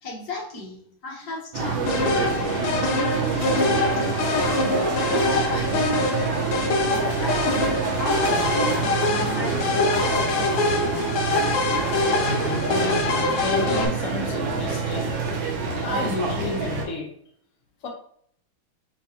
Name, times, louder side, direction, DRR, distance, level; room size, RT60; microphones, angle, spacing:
voice 1, 0.0-2.2 2.7-6.1 6.8-10.9, left 1 dB, 50° left, -2 dB, 1.4 m, -35 dB
sound 1, 1.5-16.8, right 4 dB, 70° right, 1.7 m, -27 dB
sound 2, 1.9-13.9, left 3 dB, 85° left, 1.6 m, -24 dB
voice 2, 12.7-15.3 15.8-17.1 17.8-17.9, left 3 dB, 65° left, 0 dB, 0.7 m, -32 dB
6.8 x 2.3 x 2.8 m, 0.65 s
omnidirectional pair, 2.3 m